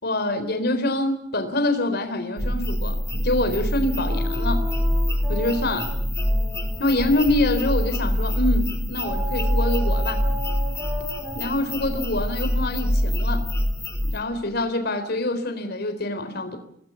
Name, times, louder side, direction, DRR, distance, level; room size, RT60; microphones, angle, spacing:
voice 1, 0.0-3.0 3.2-4.6 5.3-5.9 6.8-10.2 11.3-13.4 14.1-16.6, left 2 dB, 55° left, 7 dB, 3.9 m, -25 dB
sound 1, 2.4-14.2, equal, 15° left, 3.2 m, -25 dB
sound 2, 4.1-8.2 9.0-13.8, equal, 20° right, 3.5 m, -37 dB
27.0 x 19.0 x 7.0 m, 0.74 s
head